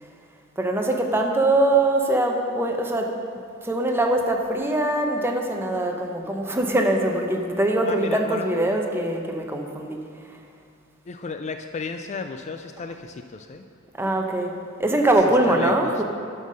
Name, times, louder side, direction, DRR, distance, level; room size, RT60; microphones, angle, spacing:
voice 1, 0.6-3.1 3.6-10.0 14.0-14.5 14.8-16.0, right 1 dB, 10° right, 2 dB, 0.8 m, -22 dB
voice 2, 7.9-8.5 11.1-13.7 15.5-16.0, left 4 dB, 35° left, 7 dB, 0.3 m, -33 dB
9.4 x 5.6 x 6.4 m, 2.3 s
head